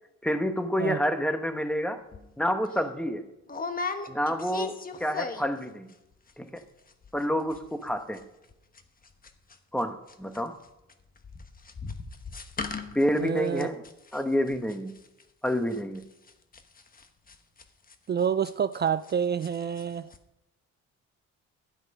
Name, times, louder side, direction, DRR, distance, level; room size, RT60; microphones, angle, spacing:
voice 1, 0.2-2.0 2.4-3.2 4.1-4.7 5.0-5.9 6.4-6.6 7.1-8.2 9.7-10.5 12.9-13.8 14.1-14.9 15.4-16.0, equal, 5° left, 7 dB, 1.1 m, -28 dB
sound 1, 2.1-2.3 2.7-2.8 3.5-5.6 5.9-6.3 6.6-6.7 6.9-7.2 7.5-19.1 19.4-19.8 20.1-20.2, left 4 dB, 30° left, 1.1 m, -38 dB
voice 2, 13.2-13.7 18.1-20.1, right 7 dB, 35° right, 15 dB, 0.4 m, -28 dB
12.0 x 7.9 x 5.4 m, 0.90 s
cardioid pair, 90°, 30 cm